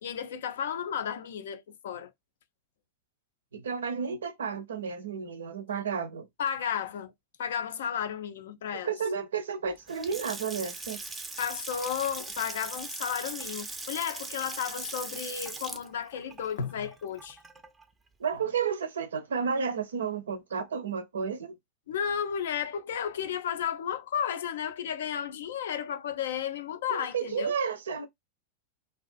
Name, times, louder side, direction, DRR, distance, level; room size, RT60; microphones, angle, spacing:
voice 1, 0.0-2.1 6.4-7.1 7.4-8.9 11.4-17.4 21.9-27.5, left 8 dB, 60° left, 0.4 m, -33 dB
voice 2, 3.5-6.3 8.7-11.0 18.2-21.6 26.9-28.1, right 6 dB, 65° right, 0.5 m, -32 dB
Water tap faucet / Sink (filling or washing) / Splash splatter, 9.8-17.8, right 3 dB, 10° right, 0.4 m, -40 dB
2.5 x 2.3 x 2.4 m
figure-of-eight pair, 90°, 0 cm